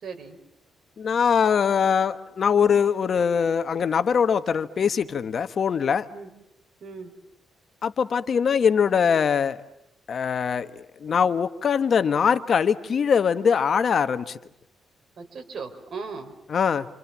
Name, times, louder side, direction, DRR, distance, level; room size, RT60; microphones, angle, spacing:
voice 1, 0.0-0.4 6.1-6.3 6.8-7.1 15.2-16.3, right 4 dB, 55° right, 5 dB, 5.1 m, -37 dB
voice 2, 1.0-6.1 7.8-9.6 10.1-14.4 16.5-16.9, left 7 dB, 55° left, 11 dB, 1.2 m, -22 dB
28.0 x 27.5 x 7.4 m, 0.83 s
cardioid pair, 110°, 0 cm